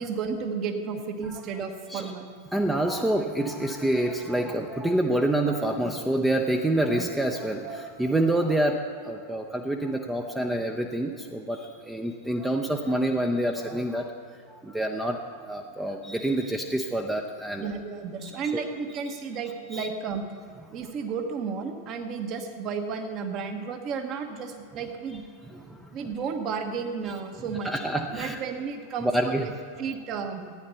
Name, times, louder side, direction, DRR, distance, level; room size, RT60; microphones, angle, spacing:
voice 1, 0.0-2.3 12.7-12.8 17.6-20.2 20.7-25.2 25.9-27.7 28.1-29.5 29.8-30.4, right 5 dB, 35° right, 5 dB, 1.3 m, -33 dB
voice 2, 2.5-14.1 14.5-17.7 18.2-18.6 19.7-19.9 25.5-25.9 27.6-28.4 29.0-29.4, right 1 dB, 5° right, 3 dB, 0.7 m, -27 dB
14.0 x 9.7 x 5.7 m, 2.2 s
figure-of-eight pair, 90°, 0 cm